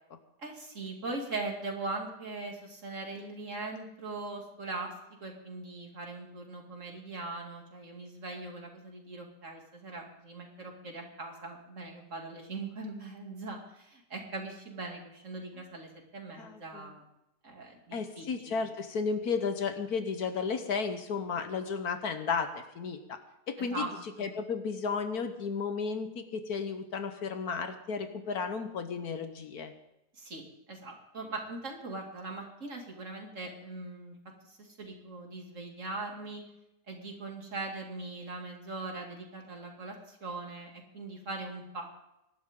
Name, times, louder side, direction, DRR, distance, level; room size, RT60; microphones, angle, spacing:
voice 1, 0.4-4.9 5.2-17.0 17.4-18.6 23.6-23.9 24.2-24.3 30.1-34.2 34.4-36.4 36.9-41.9, right 3 dB, 50° right, 1 dB, 2.9 m, -40 dB
voice 2, 16.4-16.9 17.9-22.5 22.7-23.2 23.5-23.9 24.2-29.7, left 5 dB, 65° left, 8 dB, 1.5 m, -33 dB
24.5 x 12.0 x 3.8 m, 0.89 s
omnidirectional pair, 1.7 m